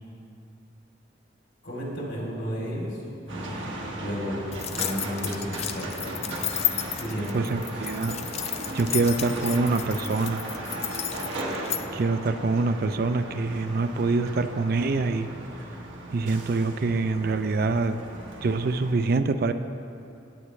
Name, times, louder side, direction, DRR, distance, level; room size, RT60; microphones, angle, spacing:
voice 1, 1.6-4.4 4.7-6.1 6.9-7.5, equal, 70° left, -4 dB, 2.9 m, -33 dB
sound 1, 3.3-18.9, right 1 dB, 90° right, 1.5 m, -37 dB
sound 2, 4.5-11.8, left 11 dB, 35° left, 0.4 m, -32 dB
voice 2, 7.3-8.2 8.7-10.4 11.9-15.3 16.1-18.0 18.4-19.5, right 3 dB, 55° right, 9 dB, 0.4 m, -25 dB
16.5 x 9.1 x 3.2 m, 2.6 s
head